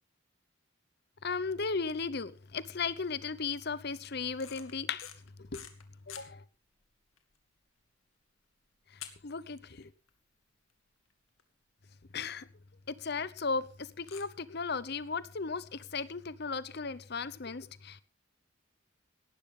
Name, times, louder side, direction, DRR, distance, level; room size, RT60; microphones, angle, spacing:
voice 1, 1.2-5.1 5.5-5.6 6.1-6.4 9.2-9.9 12.1-12.5 12.9-18.0, left 4 dB, 50° left, 0.8 m, -36 dB
sound 1, 4.4-6.3 6.8-6.9 7.2-7.4 7.8-7.9 9.0-9.8 10.1-10.2 10.7-10.8 11.1-11.2 11.4-11.5 12.7-12.8 14.0-14.2, left 11 dB, 90° left, 2.0 m, -47 dB
17.0 x 12.0 x 3.8 m
head